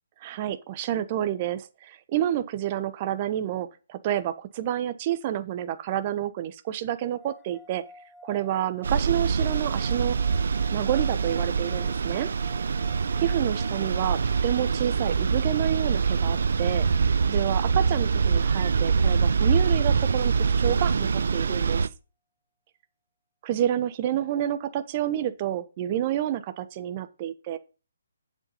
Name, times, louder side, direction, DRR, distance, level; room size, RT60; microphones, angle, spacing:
voice 1, 0.2-7.8 8.2-10.2 10.7-12.3 13.2-16.9 17.3-21.9 23.4-27.6, right 11 dB, 35° right, 1.1 m, -29 dB
sound 1, 6.9-18.3, left 1 dB, ahead, 1.3 m, -53 dB
sound 2, 8.8-21.9, right 5 dB, 65° right, 0.7 m, -24 dB
8.0 x 7.8 x 5.6 m
figure-of-eight pair, 145°, 0 cm